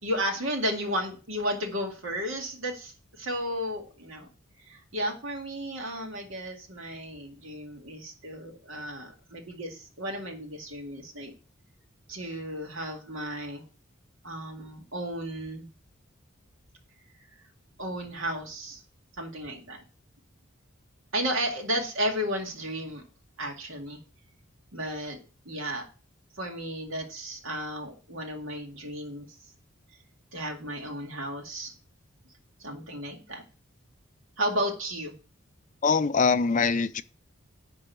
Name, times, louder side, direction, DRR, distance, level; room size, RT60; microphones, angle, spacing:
voice 1, 0.0-4.3 4.6-11.3 12.1-13.6 14.2-15.7 17.8-18.8 19.2-19.8 21.1-23.0 23.4-24.0 24.7-25.2 25.5-25.9 26.4-29.3 30.3-31.7 32.6-33.4 34.4-35.2, equal, 70° right, 2.2 m, -33 dB
voice 2, 35.8-37.0, left 5 dB, 35° left, 0.4 m, -23 dB
10.5 x 3.8 x 6.8 m
head